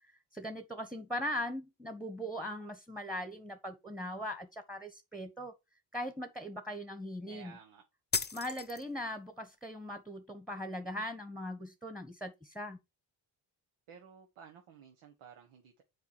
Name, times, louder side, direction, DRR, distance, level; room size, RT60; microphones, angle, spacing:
voice 1, 0.3-5.5 5.9-7.5 8.3-12.8, equal, ahead, 1.3 m, -40 dB
voice 2, 7.2-7.8 13.9-15.8, right 7 dB, 85° right, 1.5 m, -54 dB
sound 1, 8.1-9.1, left 5 dB, 20° left, 0.8 m, -35 dB
7.1 x 4.8 x 4.7 m
cardioid pair, 70°, 48 cm